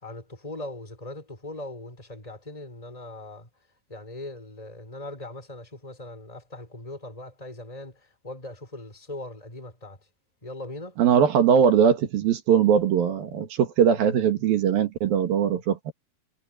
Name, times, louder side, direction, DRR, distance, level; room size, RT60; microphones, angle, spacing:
voice 1, 0.0-3.5 3.9-7.9 8.2-10.0 10.4-10.9, left 2 dB, 10° left, 6.3 m, -40 dB
voice 2, 11.0-15.9, right 8 dB, 70° right, 3.7 m, -21 dB
omnidirectional pair, 4.4 m